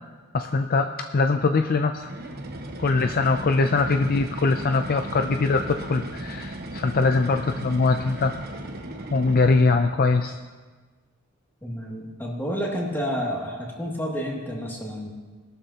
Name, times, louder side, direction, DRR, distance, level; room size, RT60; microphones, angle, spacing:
voice 1, 0.3-2.1 2.8-8.4 9.1-10.4, left 3 dB, 45° left, 7 dB, 0.5 m, -22 dB
sound 1, 2.0-10.0, right 1 dB, 50° right, 1.2 m, -36 dB
voice 2, 11.6-15.1, equal, 10° left, -2 dB, 2.3 m, -30 dB
20.5 x 12.5 x 2.9 m, 1.4 s
head